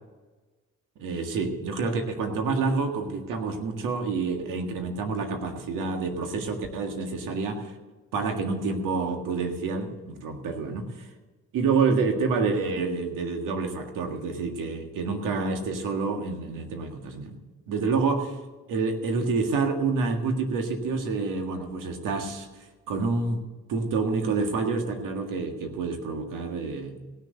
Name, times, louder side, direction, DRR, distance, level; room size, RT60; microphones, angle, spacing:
voice 1, 1.0-7.7 8.1-11.1 11.5-17.4 17.7-18.4 18.7-22.5 22.9-23.4 23.7-27.0, right 4 dB, 80° right, 4 dB, 1.9 m, -28 dB
16.5 x 6.6 x 7.8 m, 1.3 s
supercardioid pair, 70°, 32 cm